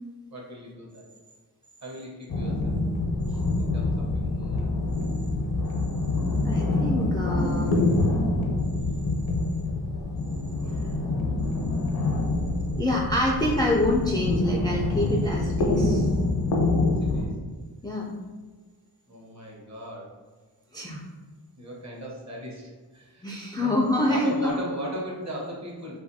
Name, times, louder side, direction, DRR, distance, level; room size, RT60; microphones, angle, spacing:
voice 1, 0.3-1.0 1.8-2.8 3.6-4.8 16.8-17.4 19.1-20.1 21.6-23.8 24.1-26.0, equal, 45° right, -2 dB, 0.9 m, -38 dB
sound 1, 2.3-17.3, left 2 dB, 70° left, 0.6 m, -26 dB
voice 2, 6.4-7.9 12.8-16.1 17.8-18.1 20.7-21.0 23.2-24.6, left 1 dB, 10° left, -2 dB, 0.3 m, -26 dB
2.6 x 2.4 x 2.6 m, 1.4 s
cardioid pair, 55°, 40 cm